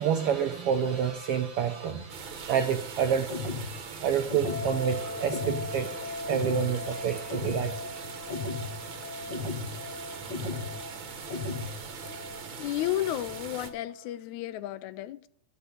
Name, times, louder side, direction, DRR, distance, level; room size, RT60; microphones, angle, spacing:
voice 1, 0.0-8.0, right 8 dB, 75° right, 1.3 m, -29 dB
sound 1, 2.1-13.7, right 5 dB, 50° right, 1.7 m, -41 dB
sound 2, 3.3-3.7 4.3-4.7 5.3-5.7 6.3-6.7 7.3-7.7 8.3-8.7 9.3-9.7 10.3-10.7 11.3-11.7, left 3 dB, 45° left, 1.8 m, -34 dB
sound 3, 4.4-14.1, left 2 dB, 65° left, 3.1 m, -41 dB
voice 2, 12.6-15.3, left 14 dB, 80° left, 1.9 m, -32 dB
11.5 x 6.8 x 6.9 m
omnidirectional pair, 3.4 m